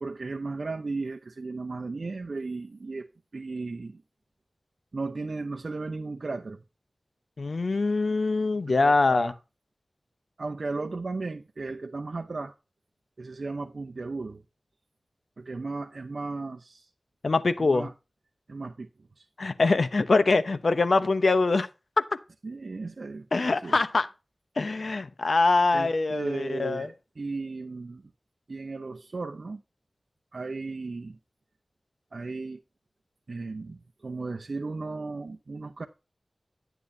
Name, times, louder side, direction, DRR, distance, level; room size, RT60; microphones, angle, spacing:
voice 1, 0.0-4.0 4.9-6.6 8.8-9.3 10.4-12.6 13.2-14.4 15.4-16.9 17.6-17.9 18.5-18.9 19.2-19.3 22.4-23.8 25.7-28.0 28.5-29.6 30.3-31.2 32.1-32.6 33.3-35.9, right 3 dB, 70° right, 0.8 m, -35 dB
voice 2, 7.4-9.3 17.2-17.9 19.4-21.7 23.3-24.1 24.6-26.9, left 3 dB, 70° left, 0.9 m, -24 dB
10.0 x 9.3 x 2.7 m
wide cardioid pair, 55°, 0 cm